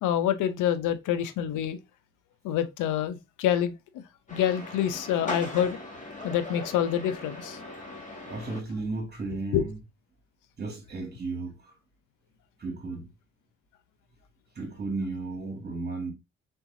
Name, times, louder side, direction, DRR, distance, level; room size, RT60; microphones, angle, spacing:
voice 1, 0.0-1.8 2.4-3.7 4.3-5.8 6.2-7.6 9.5-9.6, left 10 dB, 85° left, 0.7 m, -26 dB
sound 1, 4.3-8.6, left 1 dB, 25° left, 1.8 m, -39 dB
voice 2, 8.2-9.8 10.6-11.7 12.6-13.1 14.6-16.1, right 3 dB, 35° right, 2.1 m, -34 dB
4.5 x 4.0 x 2.6 m
cardioid pair, 90°, 30 cm